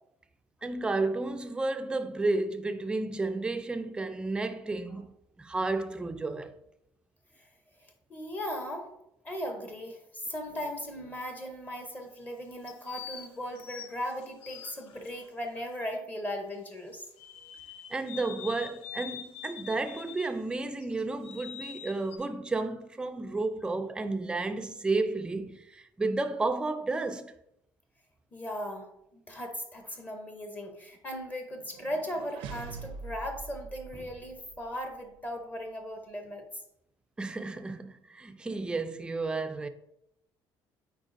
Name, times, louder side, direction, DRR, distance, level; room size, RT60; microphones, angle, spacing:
voice 1, 0.6-6.5 17.9-27.3 37.2-39.7, right 3 dB, 10° right, 0.3 m, -32 dB
voice 2, 7.8-8.9 9.2-17.1 28.3-28.9 29.3-36.4, equal, 20° left, 0.7 m, -38 dB
sound 1, 10.2-11.2 12.7-15.1 17.2-20.4 20.8-22.2, left 10 dB, 85° left, 0.6 m, -45 dB
sound 2, 31.6-34.7, right 5 dB, 90° right, 0.5 m, -44 dB
8.8 x 4.5 x 2.5 m
cardioid pair, 165°, 9 cm